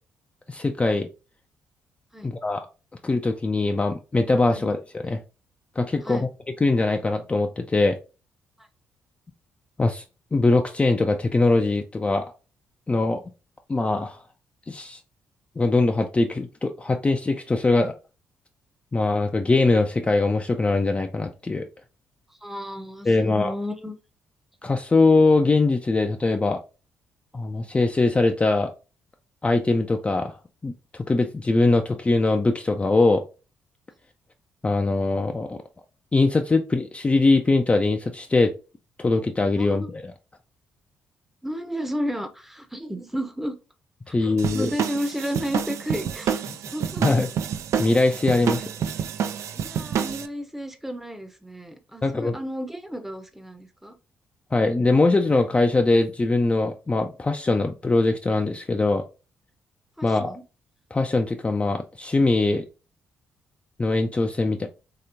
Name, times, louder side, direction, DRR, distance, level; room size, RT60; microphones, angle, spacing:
voice 1, 0.5-1.1 2.2-2.7 3.0-5.2 5.8-6.3 6.6-8.0 9.8-10.0 10.3-12.3 12.9-13.2 13.7-14.2 14.7-15.0 15.6-17.9 18.9-21.7 23.1-23.5 24.6-26.6 27.3-28.7 29.4-30.4 30.6-33.2 34.6-35.6 36.1-38.5 39.0-40.1 44.1-44.7 47.0-47.3 47.8-48.9 52.0-52.4 54.5-59.0 60.0-60.3 60.9-62.6 63.8-64.7, left 3 dB, 20° left, 0.4 m, -22 dB
voice 2, 22.4-23.9 39.6-39.8 41.4-43.6 44.1-47.1 49.5-54.0 60.0-60.4, equal, 5° right, 0.7 m, -33 dB
sound 1, 44.4-50.3, right 8 dB, 60° right, 0.3 m, -28 dB
3.2 x 2.9 x 2.6 m
hypercardioid pair, 45°, 6 cm